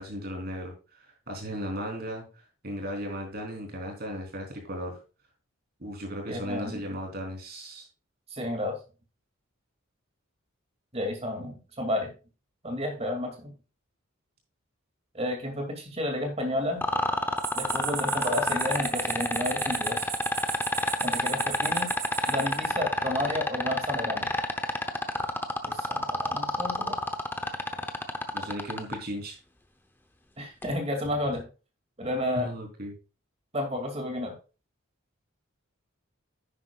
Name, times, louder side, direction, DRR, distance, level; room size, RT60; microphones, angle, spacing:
voice 1, 0.0-2.2 2.6-5.0 5.8-7.9 28.3-29.4 32.4-32.9, equal, 50° right, 1 dB, 3.6 m, -36 dB
voice 2, 6.3-6.8 8.3-8.8 10.9-12.1 12.6-13.5 15.1-16.8 17.5-20.0 21.0-21.9 22.3-24.3 25.6-27.0 30.4-31.5 32.0-32.5 33.5-34.3, left 1 dB, 30° right, 3 dB, 2.5 m, -31 dB
sound 1, 16.8-29.0 30.6-30.7, left 1 dB, 10° left, 0.8 m, -27 dB
sound 2, 17.4-22.7, right 9 dB, 85° right, 1.7 m, -36 dB
10.5 x 9.7 x 2.4 m, 0.32 s
head